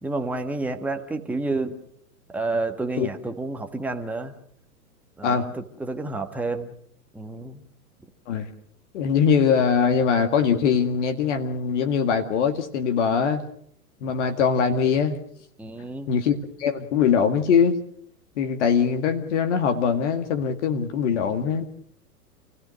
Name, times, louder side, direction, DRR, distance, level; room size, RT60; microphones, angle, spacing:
voice 1, 0.0-1.8 2.3-4.3 5.2-6.7 7.1-7.6 15.6-16.1, right 2 dB, 5° right, 5 dB, 1.5 m, -30 dB
voice 2, 8.9-13.4 14.0-15.2 16.1-17.7 18.4-21.7, left 6 dB, 50° left, 6 dB, 2.1 m, -22 dB
28.0 x 17.0 x 6.5 m, 0.66 s
figure-of-eight pair, 105°, 46 cm